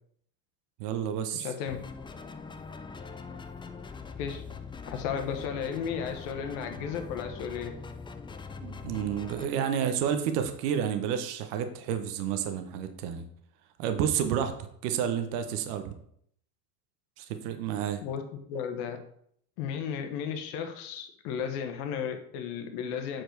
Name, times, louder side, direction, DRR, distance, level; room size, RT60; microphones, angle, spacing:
voice 1, 0.8-1.5 8.6-13.2 13.8-14.5 14.8-15.9 17.2-18.0, right 8 dB, 70° right, 8 dB, 1.1 m, -30 dB
voice 2, 1.3-1.8 4.2-4.4 4.9-7.8 18.0-18.2 18.5-19.0 19.6-23.2, left 7 dB, 70° left, 6 dB, 1.3 m, -34 dB
sound 1, 1.7-9.5, left 4 dB, 10° left, 0.4 m, -42 dB
7.7 x 4.6 x 4.6 m, 0.66 s
hypercardioid pair, 85°, 49 cm